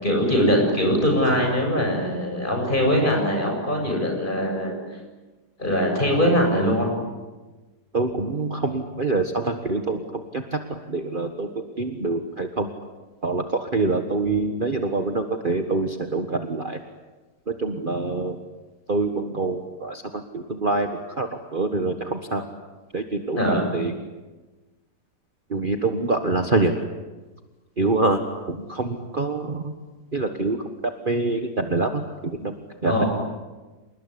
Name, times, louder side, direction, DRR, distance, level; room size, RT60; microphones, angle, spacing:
voice 1, 0.0-4.7 5.6-6.9 23.4-23.7 32.9-33.1, equal, 30° left, 2 dB, 7.7 m, -21 dB
voice 2, 7.9-10.0 10.3-11.5 11.8-12.7 13.2-16.8 17.5-18.4 18.9-20.9 21.2-22.5 22.9-23.9 25.5-26.7 27.8-29.7 30.1-32.5 32.8-33.0, right 3 dB, 30° right, 5 dB, 1.6 m, -25 dB
29.0 x 20.0 x 9.9 m, 1.2 s
omnidirectional pair, 1.8 m